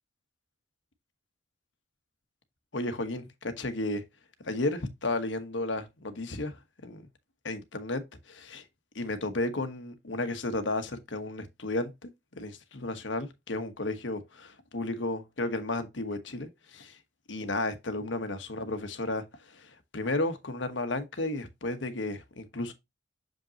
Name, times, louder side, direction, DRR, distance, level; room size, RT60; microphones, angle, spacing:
voice 1, 2.7-4.0 4.4-6.6 6.8-7.1 7.4-8.6 8.9-12.1 12.3-17.0 17.3-22.7, left 2 dB, 85° left, 1.2 m, -33 dB
6.8 x 5.3 x 2.9 m
head